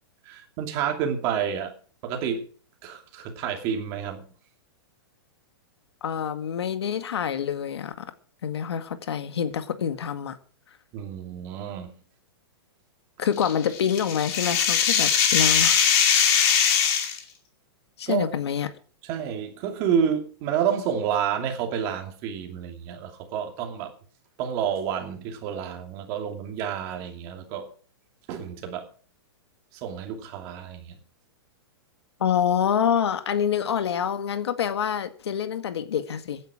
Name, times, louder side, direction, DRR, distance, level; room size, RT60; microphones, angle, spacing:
voice 1, 0.3-1.7 2.0-2.5 2.8-4.3 10.9-11.9 18.1-18.3 19.0-23.9 24.4-27.7 28.3-28.9 29.7-31.0, right 8 dB, 25° right, 2.6 m, -29 dB
voice 2, 6.0-8.1 8.4-10.4 13.2-15.9 18.0-18.7 32.2-36.4, left 8 dB, 90° left, 1.9 m, -26 dB
sound 1, 13.4-17.2, left 8 dB, 25° left, 2.3 m, -21 dB
16.0 x 10.0 x 5.0 m
supercardioid pair, 180°, 13 cm